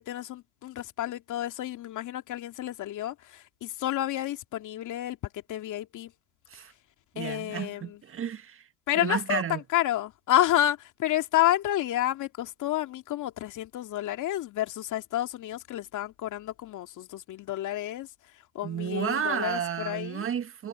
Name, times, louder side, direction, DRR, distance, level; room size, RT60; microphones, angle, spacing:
voice 1, 0.0-6.1 7.2-8.0 8.9-18.1 18.5-20.2, left 13 dB, 45° left, 2.6 m, -30 dB
voice 2, 7.2-8.7 9.0-9.6 18.6-20.7, right 8 dB, 30° right, 1.8 m, -32 dB
supercardioid pair, 105°, 43 cm